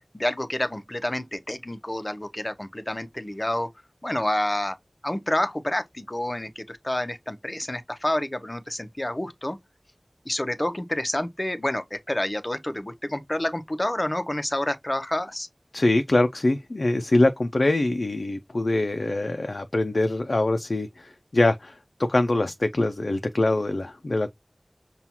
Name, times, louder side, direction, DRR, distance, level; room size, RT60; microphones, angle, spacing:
voice 1, 0.1-3.7 4.0-4.8 5.0-9.6 10.3-15.5, left 1 dB, 35° left, 0.6 m, -28 dB
voice 2, 15.7-24.3, left 2 dB, 85° left, 0.4 m, -23 dB
5.6 x 2.3 x 2.8 m
wide cardioid pair, 45°, 0 cm